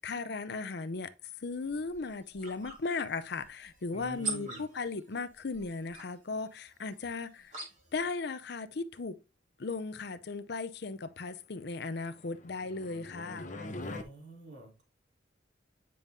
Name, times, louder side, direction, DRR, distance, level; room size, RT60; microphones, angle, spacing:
voice 1, 0.0-1.1 1.4-7.5 7.9-9.2 9.6-13.5, left 4 dB, 60° left, 0.6 m, -37 dB
sound 1, 1.5-8.1, right 3 dB, 40° right, 2.7 m, -45 dB
voice 2, 3.9-4.6 13.8-14.8, right 2 dB, 65° right, 3.0 m, -47 dB
sound 2, 12.1-14.0, left 2 dB, 40° left, 0.9 m, -43 dB
9.3 x 5.3 x 2.7 m
head